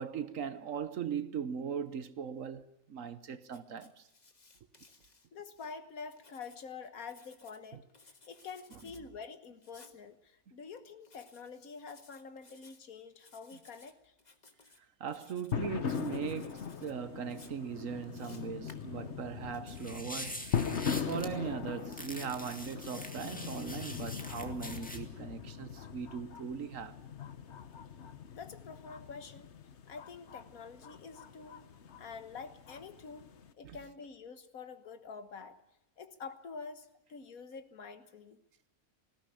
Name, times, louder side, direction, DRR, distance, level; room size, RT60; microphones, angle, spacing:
voice 1, 0.0-4.1 7.7-7.8 14.8-20.7 21.0-27.0 33.6-33.8, right 7 dB, 65° right, 1.3 m, -39 dB
Writing, 3.4-5.7 6.1-7.6 7.9-9.0 9.6-10.0 11.0-11.5 11.8-12.8 13.2-13.9 14.2-14.8 15.1-15.5 15.8-16.9 17.3-19.6, left 3 dB, 30° left, 1.5 m, -60 dB
voice 2, 5.3-7.9 8.3-14.2 28.3-29.5 29.9-31.7 32.0-35.6 36.0-38.4, left 5 dB, 75° left, 1.8 m, -47 dB
sound 1, 15.5-33.5, left 7 dB, 55° left, 1.3 m, -40 dB
sound 2, 19.7-21.3 21.9-25.0, equal, 5° left, 2.0 m, -44 dB
19.5 x 16.0 x 10.0 m
omnidirectional pair, 1.5 m